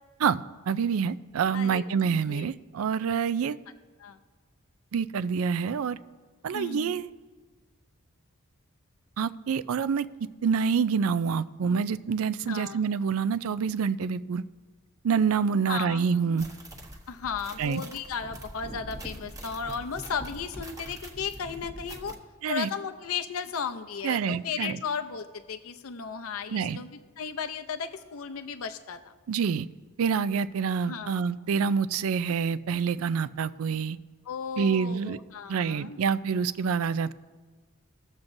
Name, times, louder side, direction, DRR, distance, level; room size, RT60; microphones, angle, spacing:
voice 1, 0.2-3.6 4.9-6.0 6.4-7.1 9.2-10.1 10.4-14.5 15.0-16.5 17.6-17.8 22.4-22.7 24.0-24.8 26.5-26.8 29.3-29.7 30.0-34.0 34.6-35.2 35.5-37.1, right 6 dB, 75° right, 15 dB, 0.4 m, -27 dB
voice 2, 1.5-1.9 2.3-2.5 4.0-4.2 6.5-7.0 12.5-12.8 15.7-16.0 17.1-22.2 22.5-26.9 27.2-29.1 30.9-31.2 34.3-36.0, left 6 dB, 80° left, 8 dB, 0.5 m, -35 dB
sound 1, 16.4-22.2, right 1 dB, 15° right, 1.0 m, -43 dB
21.0 x 7.2 x 2.6 m, 1.4 s
head